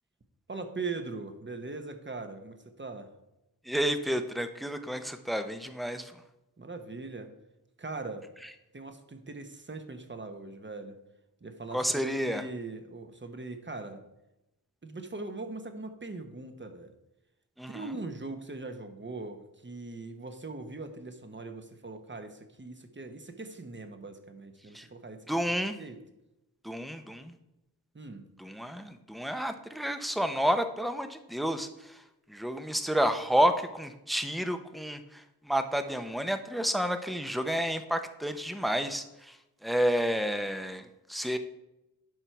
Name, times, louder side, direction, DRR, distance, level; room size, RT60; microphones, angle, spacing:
voice 1, 0.5-3.1 6.6-7.3 7.8-8.3 8.7-11.0 11.4-14.0 14.8-16.9 17.7-25.3 25.8-26.0 27.9-28.3, right 3 dB, 30° right, 7 dB, 1.0 m, -41 dB
voice 2, 3.6-6.2 11.7-12.4 17.6-17.9 24.7-24.9 25.3-25.8 26.6-27.3 28.4-32.0 32.3-39.4 39.6-41.4, equal, ahead, 8 dB, 0.7 m, -30 dB
11.0 x 4.5 x 4.6 m, 0.92 s
wide cardioid pair, 65°, 36 cm